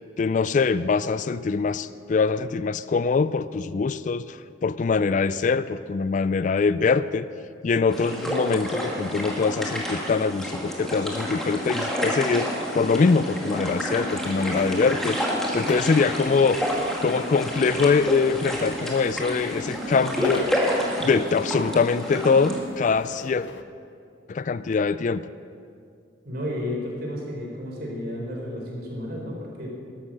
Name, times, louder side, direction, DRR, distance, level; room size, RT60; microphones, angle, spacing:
voice 1, 0.2-7.3 7.6-15.2 15.5-16.7 17.0-20.5 21.0-23.5 24.3-25.2, left 4 dB, 40° left, 15 dB, 0.3 m, -23 dB
sound 1, 7.9-22.6, equal, 5° left, 2.0 m, -29 dB
sound 2, 13.7-23.6, left 3 dB, 75° left, 0.8 m, -40 dB
voice 2, 26.2-29.7, left 1 dB, 55° right, -1 dB, 3.9 m, -32 dB
13.0 x 12.5 x 6.4 m, 2.3 s
head